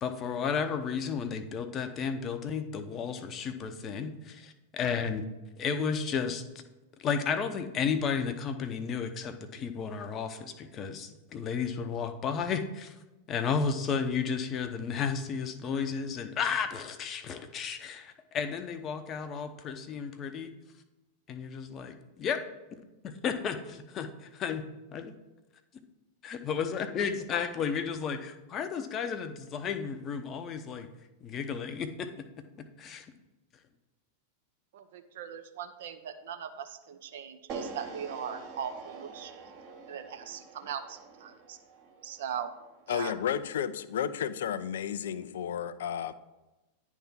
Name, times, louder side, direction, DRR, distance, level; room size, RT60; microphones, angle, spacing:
voice 1, 0.0-5.2 5.6-6.4 7.0-12.9 13.3-20.5 21.3-22.4 23.0-24.6 24.9-25.1 26.2-30.9 31.2-32.1 32.8-33.1, left 6 dB, 30° left, 9 dB, 0.7 m, -33 dB
voice 2, 34.7-39.5 39.9-41.6 42.0-42.5 42.9-43.1, right 8 dB, 55° right, 8 dB, 0.7 m, -40 dB
sound 1, 37.5-43.7, right 4 dB, 40° right, 1.1 m, -45 dB
voice 3, 42.9-46.1, left 9 dB, 60° left, 15 dB, 0.4 m, -32 dB
10.0 x 3.6 x 5.8 m, 1.1 s
figure-of-eight pair, 90°, 0 cm